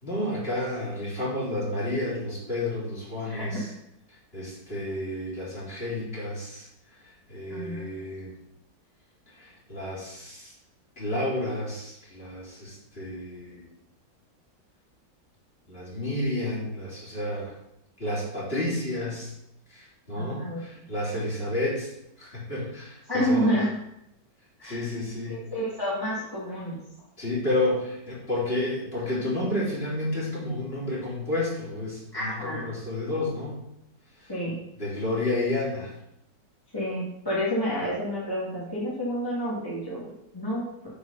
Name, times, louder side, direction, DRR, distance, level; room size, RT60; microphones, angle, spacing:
voice 1, 0.0-3.7 4.3-6.7 7.3-8.3 9.4-10.5 11.0-13.6 15.7-17.5 18.0-19.3 19.7-21.9 22.2-23.5 24.6-25.4 27.2-33.6 34.8-35.9, left 1 dB, 30° left, -7 dB, 3.4 m, -31 dB
voice 2, 3.2-3.6 7.5-7.8 20.1-20.6 23.1-23.7 24.6-24.9 25.3-26.8 32.1-32.6 34.3-34.6 36.7-40.7, equal, 15° left, -7 dB, 2.0 m, -29 dB
8.7 x 4.8 x 5.5 m, 0.81 s
omnidirectional pair, 1.9 m